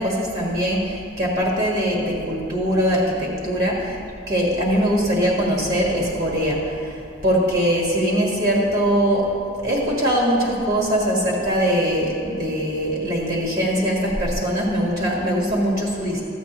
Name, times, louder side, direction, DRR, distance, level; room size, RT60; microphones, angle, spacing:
voice 1, 0.0-4.0 4.3-6.6 7.2-9.3 9.6-16.2, equal, 60° right, -4 dB, 1.7 m, -21 dB
13.5 x 8.4 x 3.0 m, 2.4 s
head